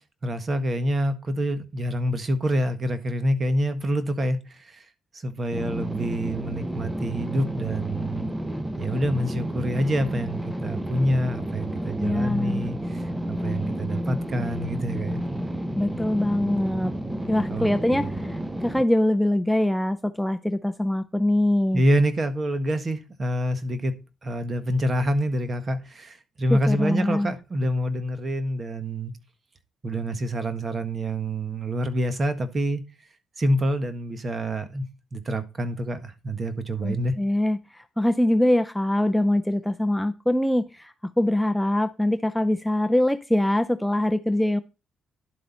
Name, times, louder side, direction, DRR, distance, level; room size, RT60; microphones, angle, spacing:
voice 1, 0.2-4.8 5.2-8.3 8.8-15.2 17.5-18.1 21.7-23.9 24.2-29.1 29.8-32.8 33.4-34.8 35.1-37.1, equal, 35° right, 1.5 m, -27 dB
sound 1, 5.5-18.8, right 1 dB, 10° right, 1.0 m, -31 dB
voice 2, 12.0-12.7 15.7-16.9 17.3-21.8 26.5-27.3 36.8-44.6, left 1 dB, 5° left, 0.5 m, -23 dB
11.0 x 7.8 x 4.2 m
cardioid pair, 90°, 0 cm